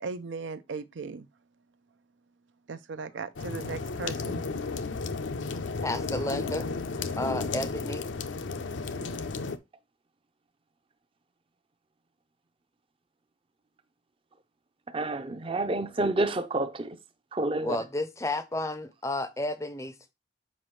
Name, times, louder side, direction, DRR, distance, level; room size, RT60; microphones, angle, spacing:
voice 1, 0.0-1.3 2.7-4.4, right 4 dB, 80° right, 0.5 m, -37 dB
sound 1, 3.4-9.6, left 4 dB, 85° left, 0.6 m, -33 dB
voice 2, 5.8-6.7 7.2-8.0 17.6-20.1, left 2 dB, 15° left, 0.5 m, -32 dB
voice 3, 14.9-17.0 17.3-17.8, right 2 dB, 30° right, 0.6 m, -29 dB
7.5 x 5.0 x 3.2 m
head